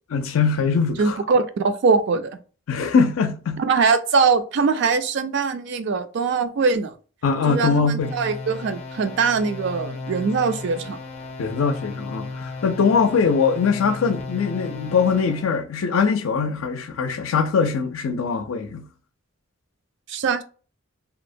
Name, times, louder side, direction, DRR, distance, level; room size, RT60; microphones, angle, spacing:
voice 1, 0.1-1.2 2.7-3.6 7.2-8.1 11.4-18.9, left 5 dB, 85° left, 0.4 m, -22 dB
voice 2, 1.0-2.4 3.6-7.0 7.5-11.0 20.1-20.4, right 5 dB, 60° right, 0.3 m, -22 dB
sound 1, 8.0-15.6, left 3 dB, 30° left, 0.5 m, -35 dB
2.7 x 2.1 x 2.6 m
head